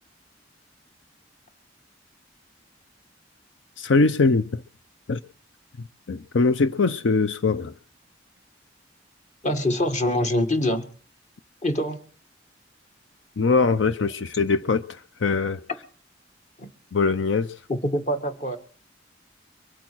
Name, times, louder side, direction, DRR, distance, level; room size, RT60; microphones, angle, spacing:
voice 1, 3.8-4.6 5.1-5.2 6.1-7.7 13.4-15.6 16.9-17.5, left 4 dB, 85° left, 0.6 m, -22 dB
voice 2, 9.4-10.9 11.6-12.0 16.6-16.7 17.7-18.6, left 1 dB, 40° left, 1.8 m, -24 dB
24.0 x 8.5 x 6.2 m
head